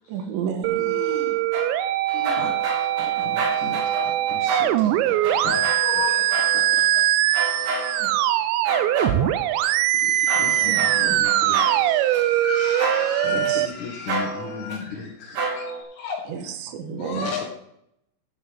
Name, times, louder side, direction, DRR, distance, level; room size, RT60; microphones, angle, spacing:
voice 1, 0.1-1.0 8.0-8.2 10.7-11.2 13.2-13.7 16.3-17.3, right 7 dB, 70° right, 7 dB, 3.3 m, -32 dB
sound 1, 0.6-13.7, right 14 dB, 85° right, 2.5 m, -22 dB
voice 2, 0.8-1.4 2.1-2.5 3.8-3.9 5.0-5.5 5.8-6.4 9.5-16.2 17.0-17.5, left 6 dB, 75° left, -5 dB, 5.4 m, -35 dB
sound 2, 1.5-6.8 7.3-8.1 8.6-9.7 10.3-12.2 12.8-13.5 14.1-14.8 15.3-15.8, right 2 dB, 50° right, 4.9 m, -30 dB
voice 3, 2.3-6.1 6.5-8.3 9.0-9.1 10.0-12.0 13.2-15.4 17.1-17.5, left 5 dB, 55° left, -1 dB, 2.4 m, -38 dB
14.5 x 5.5 x 8.1 m, 0.75 s
omnidirectional pair, 5.8 m